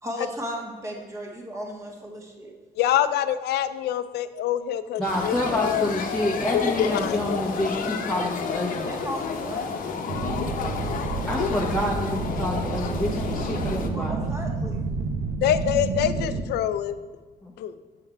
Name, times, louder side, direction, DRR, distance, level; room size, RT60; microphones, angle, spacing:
voice 1, 0.0-2.6 8.9-9.9 13.9-14.8, equal, 20° right, 0 dB, 1.5 m, -35 dB
voice 2, 2.8-5.9 6.5-7.4 15.4-17.0 17.6-17.7, left 11 dB, 85° left, 13 dB, 0.5 m, -25 dB
voice 3, 5.0-8.9 11.3-14.3 17.4-17.5, left 1 dB, 5° left, -4 dB, 0.9 m, -28 dB
sound 1, 5.1-13.9, left 5 dB, 55° left, 0.9 m, -31 dB
sound 2, 10.1-16.4, right 4 dB, 70° right, 1.0 m, -29 dB
7.7 x 5.7 x 4.5 m, 1.4 s
cardioid pair, 125°, 17 cm